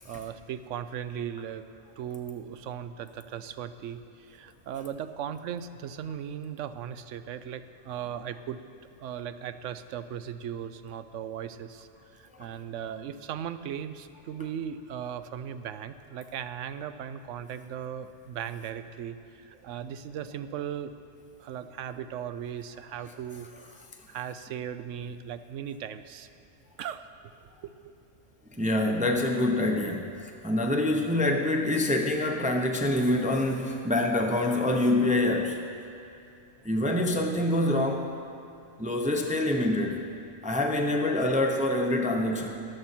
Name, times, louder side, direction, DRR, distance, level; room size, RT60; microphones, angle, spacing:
voice 1, 0.0-1.7 2.0-8.6 9.0-20.9 21.4-26.3 26.8-27.0 27.6-27.9, right 9 dB, 75° right, 11 dB, 0.9 m, -38 dB
voice 2, 28.6-30.1 30.4-35.6 36.6-38.1 38.8-40.1 40.4-42.5, left 1 dB, 10° right, 2 dB, 0.6 m, -26 dB
14.0 x 12.0 x 4.4 m, 2.6 s
omnidirectional pair, 1.3 m